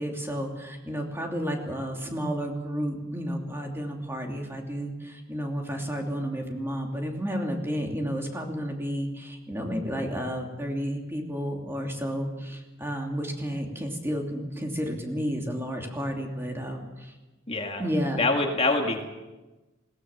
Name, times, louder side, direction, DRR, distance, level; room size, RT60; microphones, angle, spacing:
voice 1, 0.0-17.1 17.8-18.2, equal, 10° right, 1 dB, 2.9 m, -31 dB
voice 2, 17.5-17.8 18.2-19.0, left 2 dB, 30° left, 3 dB, 2.0 m, -25 dB
21.0 x 18.0 x 7.3 m, 1.1 s
head